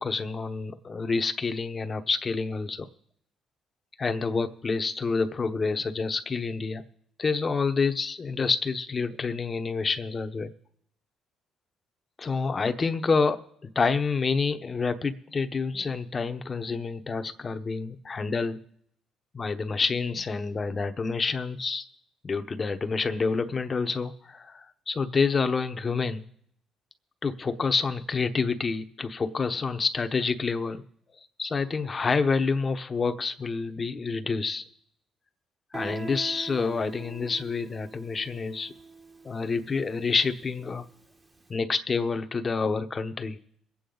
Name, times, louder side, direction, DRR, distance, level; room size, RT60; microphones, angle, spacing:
voice 1, 0.0-2.9 4.0-6.8 7.2-10.5 12.2-13.4 13.7-18.6 19.3-21.9 22.2-26.2 27.2-30.8 31.4-34.6 35.7-38.7 39.2-40.8 41.5-43.4, left 4 dB, 35° left, 9 dB, 1.0 m, -28 dB
Guitar, 35.7-41.2, right 4 dB, 25° right, 1.3 m, -43 dB
22.5 x 8.6 x 3.9 m, 0.68 s
cardioid pair, 85°, 0 cm